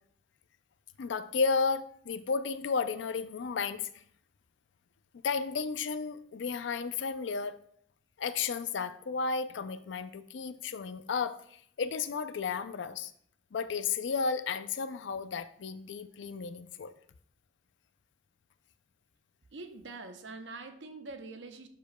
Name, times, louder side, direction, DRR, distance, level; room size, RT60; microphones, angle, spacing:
voice 1, 1.0-3.9 5.2-7.6 8.2-13.1 13.5-16.9, left 5 dB, 85° left, 0.4 m, -33 dB
voice 2, 19.5-21.7, right 3 dB, 85° right, 0.7 m, -44 dB
11.0 x 5.0 x 2.2 m
head